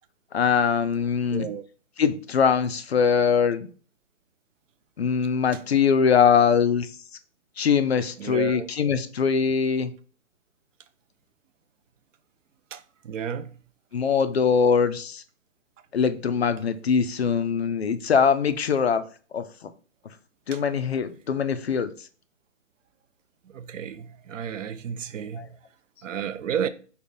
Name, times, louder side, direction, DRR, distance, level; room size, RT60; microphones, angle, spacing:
voice 1, 0.3-1.5 2.0-3.7 5.0-6.9 7.6-9.9 13.9-15.2 15.9-19.0 19.3-19.5 20.5-21.9 25.3-25.5, left 6 dB, 60° left, 0.4 m, -22 dB
voice 2, 1.3-1.6 8.2-8.7 12.7-13.5 20.5-20.6 23.5-25.5 26.0-26.7, right 8 dB, 85° right, 0.5 m, -32 dB
3.4 x 2.2 x 3.8 m
hypercardioid pair, 180°, 37 cm